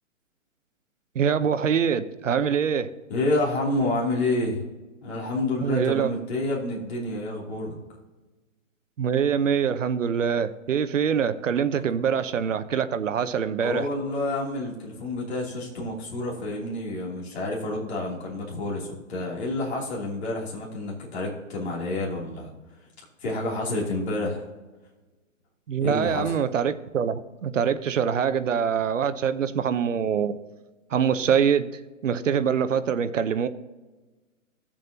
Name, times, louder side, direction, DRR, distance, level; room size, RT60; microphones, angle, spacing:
voice 1, 1.1-2.9 5.6-6.1 9.0-13.9 25.7-30.4 30.9-31.7 32.0-33.5, right 7 dB, 65° right, 11 dB, 0.8 m, -24 dB
voice 2, 3.1-4.6 5.0-7.7 13.6-22.5 23.2-24.4 25.8-26.3, left 2 dB, 50° left, -3 dB, 3.0 m, -29 dB
16.0 x 7.4 x 2.8 m, 1.2 s
hypercardioid pair, 180°, 40 cm